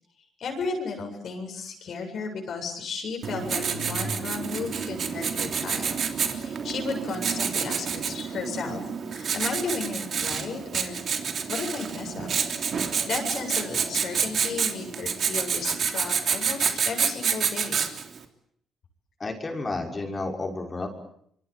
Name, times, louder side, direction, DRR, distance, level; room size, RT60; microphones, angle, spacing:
voice 1, 0.4-8.8 9.1-11.1 11.5-12.3 12.7-17.8, left 4 dB, 60° left, 2 dB, 7.9 m, -34 dB
Writing, 3.2-18.2, right 6 dB, 55° right, 3.4 m, -28 dB
voice 2, 19.2-20.9, left 3 dB, 30° left, 3 dB, 6.2 m, -31 dB
26.5 x 24.0 x 8.6 m, 0.69 s
cardioid pair, 90°, 0 cm